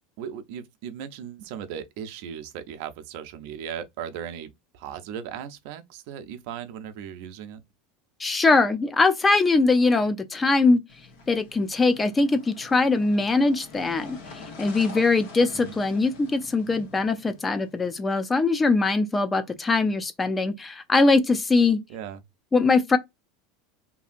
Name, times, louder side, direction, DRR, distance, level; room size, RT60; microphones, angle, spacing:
voice 1, 0.2-7.6 15.5-15.8 21.9-22.2, right 8 dB, 65° right, 0.5 m, -37 dB
voice 2, 8.2-10.8 11.3-14.2 14.6-21.8 22.5-23.0, left 3 dB, 15° left, 0.4 m, -21 dB
sound 1, 10.9-17.9, left 4 dB, 80° left, 1.0 m, -45 dB
2.7 x 2.6 x 2.5 m
supercardioid pair, 120°, 0 cm